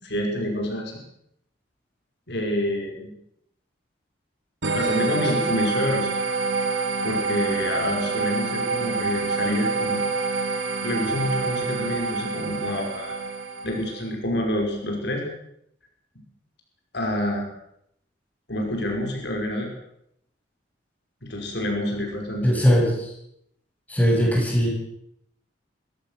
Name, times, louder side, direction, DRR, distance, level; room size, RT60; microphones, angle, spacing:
voice 1, 0.0-1.0 2.3-3.1 4.7-6.1 7.0-10.0 10.3-10.5 10.8-13.2 13.6-15.3 16.9-17.5 18.5-19.7 21.2-22.5, left 1 dB, 65° left, 1 dB, 5.6 m, -27 dB
sound 1, 4.6-14.0, right 4 dB, 90° right, 3.3 m, -27 dB
voice 2, 22.4-23.1 23.9-24.7, equal, 10° left, -2 dB, 7.3 m, -20 dB
23.5 x 16.5 x 6.7 m, 0.75 s
head